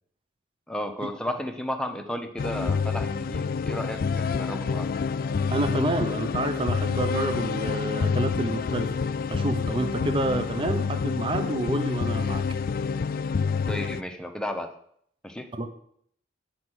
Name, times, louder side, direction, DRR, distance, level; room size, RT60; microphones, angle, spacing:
voice 1, 0.7-4.9 13.6-14.7 15.2-15.5, left 1 dB, 5° left, 5 dB, 0.9 m, -33 dB
sound 1, 2.4-14.0, left 5 dB, 50° left, 0.3 m, -28 dB
voice 2, 5.5-8.9 9.3-12.4 15.6-15.7, right 1 dB, 30° right, 7 dB, 0.7 m, -28 dB
9.3 x 5.6 x 6.3 m, 0.66 s
head